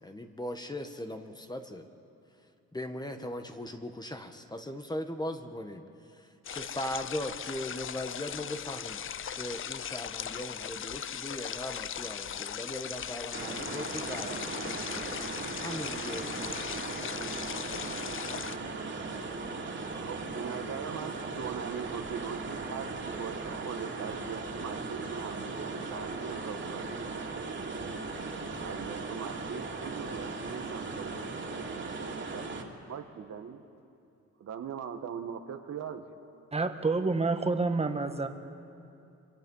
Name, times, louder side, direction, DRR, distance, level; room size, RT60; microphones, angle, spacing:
voice 1, 0.0-1.9 2.7-5.8 6.1-9.0 9.3-14.8 15.3-16.9, left 1 dB, 15° left, 1.4 m, -39 dB
sound 1, 6.4-18.6, left 9 dB, 45° left, 0.6 m, -38 dB
sound 2, 13.3-32.6, right 3 dB, 40° right, 2.9 m, -38 dB
voice 2, 19.9-27.8 28.6-31.3 31.5-32.5 32.8-33.6 34.4-36.0, right 7 dB, 60° right, 1.5 m, -41 dB
voice 3, 36.5-38.3, right 3 dB, 20° right, 1.6 m, -28 dB
25.5 x 24.5 x 5.6 m
cardioid pair, 90°, 30 cm